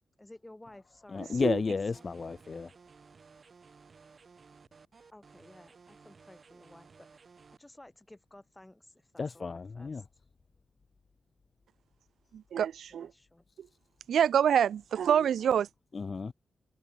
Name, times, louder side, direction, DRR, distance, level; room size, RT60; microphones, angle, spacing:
voice 1, 0.2-2.1 5.1-7.1 7.6-10.0 12.9-13.4 15.4-15.6, left 1 dB, 10° left, 5.7 m, -55 dB
voice 2, 1.1-2.7 9.2-10.0 15.9-16.3, left 4 dB, 40° left, 0.3 m, -32 dB
sound 1, 1.9-7.6, right 5 dB, 45° right, 7.1 m, -57 dB
voice 3, 12.3-13.1 13.6-13.7 14.1-15.7, right 9 dB, 90° right, 0.3 m, -26 dB
wide cardioid pair, 120°, 0 cm